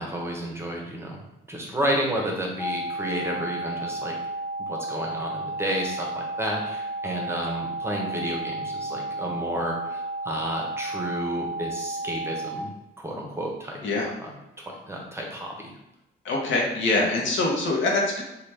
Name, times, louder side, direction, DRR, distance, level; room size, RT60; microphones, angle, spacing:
voice 1, 0.0-4.2 4.7-12.7 13.0-13.8 14.2-14.3 14.6-15.7, equal, 10° right, 0 dB, 0.7 m, -31 dB
sound 1, 2.6-12.6, right 2 dB, 10° left, 0.9 m, -32 dB
voice 2, 16.2-18.2, left 2 dB, 70° left, -2 dB, 0.8 m, -24 dB
2.9 x 2.2 x 3.3 m, 0.92 s
cardioid pair, 90°, 20 cm